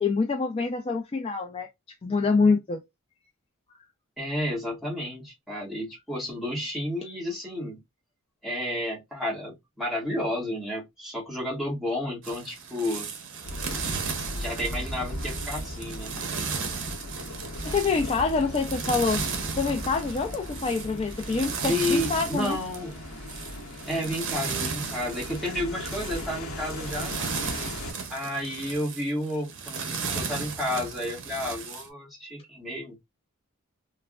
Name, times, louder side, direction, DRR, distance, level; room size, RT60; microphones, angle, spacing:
voice 1, 0.0-1.7 2.0-2.8 17.6-19.2 19.6-22.6, left 4 dB, 25° left, 0.3 m, -26 dB
voice 2, 4.2-7.8 8.4-13.1 14.3-16.2 21.6-23.0 23.9-27.3 28.1-33.0, left 1 dB, ahead, 1.2 m, -31 dB
sound 1, 12.2-31.9, right 5 dB, 60° right, 0.7 m, -35 dB
sound 2, 13.4-27.9, left 1 dB, 75° left, 0.8 m, -38 dB
3.2 x 2.0 x 2.3 m
head